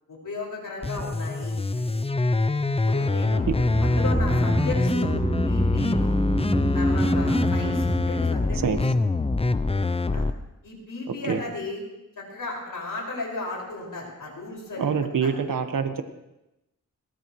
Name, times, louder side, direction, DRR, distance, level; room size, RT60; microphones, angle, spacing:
voice 1, 0.1-2.0 2.9-5.2 5.4-6.2 6.7-8.7 10.1-10.3 10.6-11.8 12.2-14.9 15.2-15.3, left 2 dB, 75° left, -2 dB, 5.6 m, -35 dB
sound 1, 0.8-10.3, left 3 dB, 20° left, 0.6 m, -25 dB
sound 2, 3.3-9.7 10.0-10.1, right 1 dB, 5° right, 0.9 m, -27 dB
voice 2, 14.8-16.0, right 6 dB, 75° right, 7 dB, 1.4 m, -25 dB
22.5 x 18.0 x 3.2 m, 0.92 s
wide cardioid pair, 80°, 33 cm